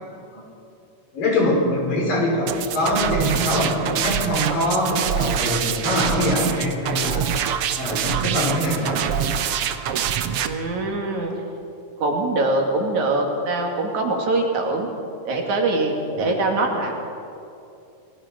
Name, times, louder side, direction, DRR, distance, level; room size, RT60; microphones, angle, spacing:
voice 1, 1.1-4.9 5.2-7.3 7.8-9.0 16.1-16.3, left 1 dB, 90° left, -2 dB, 7.1 m, -23 dB
sound 1, 2.5-10.5, right 8 dB, 90° right, 1.2 m, -25 dB
voice 2, 10.4-11.3 12.0-14.9 15.3-16.9, right 2 dB, 60° right, 1 dB, 3.7 m, -23 dB
28.0 x 19.5 x 5.2 m, 2.7 s
omnidirectional pair, 3.8 m